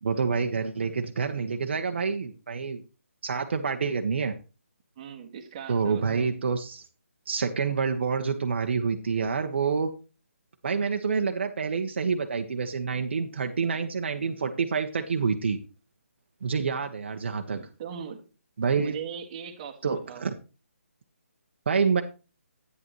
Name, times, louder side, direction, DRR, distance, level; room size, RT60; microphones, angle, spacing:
voice 1, 0.0-2.8 3.2-4.3 5.7-6.8 7.3-9.9 10.6-15.6 16.4-17.7 18.6-19.0 19.8-20.3 21.7-22.0, right 5 dB, 50° right, 5 dB, 1.1 m, -27 dB
voice 2, 5.0-6.3 17.5-18.2 18.8-20.2, right 8 dB, 25° right, 4 dB, 1.6 m, -40 dB
11.0 x 9.8 x 3.1 m, 0.32 s
hypercardioid pair, 165°, 8 cm